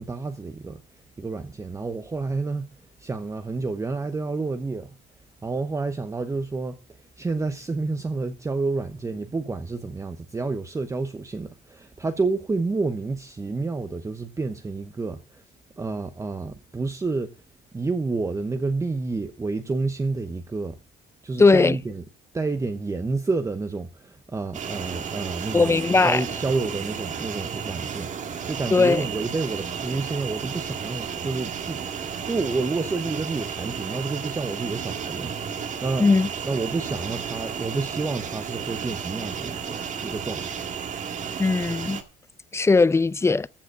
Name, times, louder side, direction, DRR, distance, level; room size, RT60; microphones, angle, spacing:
voice 1, 0.0-5.0 5.4-15.4 15.8-17.4 17.7-20.8 21.2-22.0 22.3-25.7 26.0-36.1 36.4-40.6, right 3 dB, 15° right, 0.8 m, -29 dB
voice 2, 21.4-21.8 25.5-26.2 28.7-29.1 36.0-36.3 41.4-42.0 42.5-43.5, left 3 dB, 15° left, 0.5 m, -18 dB
sound 1, 24.5-42.0, right 7 dB, 45° right, 1.8 m, -33 dB
14.0 x 5.0 x 8.0 m
cardioid pair, 110°, 17 cm